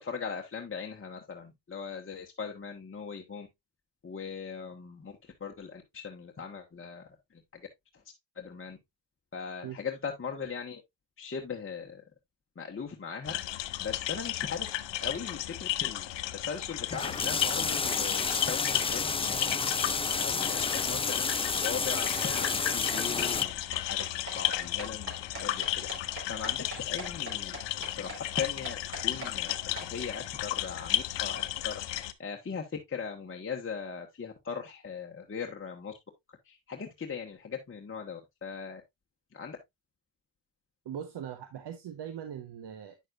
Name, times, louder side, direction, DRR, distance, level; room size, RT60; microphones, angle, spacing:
voice 1, 0.0-3.5 4.0-7.0 7.3-7.6 7.9-8.0 8.3-8.8 9.3-10.8 11.2-12.0 12.6-13.4 13.8-14.7 15.0-19.5 20.1-21.4 21.6-24.1 24.3-27.6 28.0-29.5 29.9-35.9 36.5-38.8 39.3-39.6, left 6 dB, 30° left, 1.3 m, -39 dB
sound 1, 13.2-32.1, left 14 dB, 80° left, 0.8 m, -34 dB
sound 2, 16.9-23.4, left 4 dB, 15° left, 0.4 m, -30 dB
sound 3, 21.9-29.9, right 1 dB, 30° right, 4.5 m, -41 dB
voice 2, 40.8-43.1, right 9 dB, 70° right, 1.2 m, -40 dB
9.4 x 6.4 x 2.5 m
cardioid pair, 75°, 43 cm